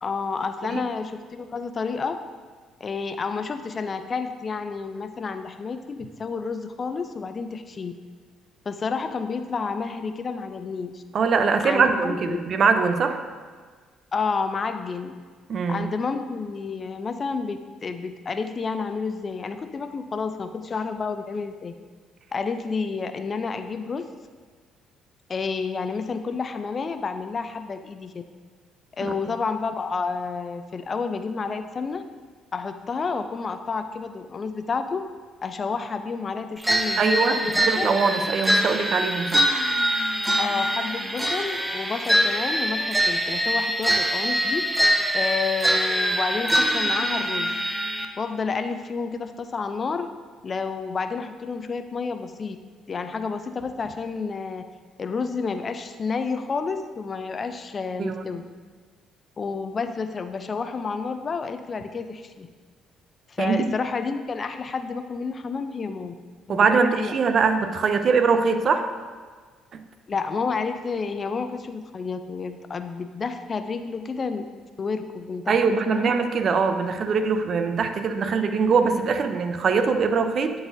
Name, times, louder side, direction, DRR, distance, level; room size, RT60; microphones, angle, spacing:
voice 1, 0.0-2.2 2.8-7.9 8.7-11.0 11.6-12.4 14.1-15.1 15.7-21.7 22.3-24.1 25.3-28.2 29.0-32.0 32.5-35.0 35.4-37.9 40.4-44.6 45.1-47.5 48.2-50.1 50.4-52.6 52.9-54.6 55.0-58.4 59.4-62.5 63.3-66.1 66.5-67.2 70.1-74.5 74.8-75.6 75.9-76.1, left 4 dB, 40° left, 9 dB, 0.5 m, -30 dB
voice 2, 11.1-13.2 15.5-15.9 29.0-29.1 37.0-39.4 58.0-58.2 63.4-63.7 66.5-68.9 75.5-80.5, right 5 dB, 55° right, 8 dB, 0.5 m, -22 dB
sound 1, 36.6-48.0, equal, 10° right, 0.6 m, -24 dB
11.0 x 4.0 x 2.6 m, 1.5 s
hypercardioid pair, 55°, 0 cm